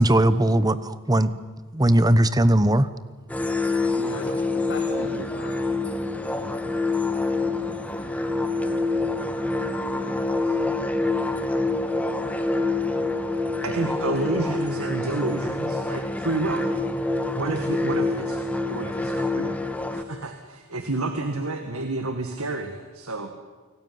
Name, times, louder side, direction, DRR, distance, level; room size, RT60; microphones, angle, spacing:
voice 1, 0.0-1.3 1.7-2.9, right 1 dB, 15° right, 14 dB, 1.0 m, -19 dB
sound 1, 3.3-20.0, left 2 dB, 5° left, 1.7 m, -26 dB
voice 2, 3.9-11.7, left 2 dB, 55° left, 1 dB, 3.2 m, -42 dB
voice 3, 13.6-16.7 17.3-18.4 18.7-19.6 19.9-23.3, right 2 dB, 75° right, 6 dB, 2.0 m, -29 dB
29.0 x 19.5 x 9.5 m, 1.4 s
head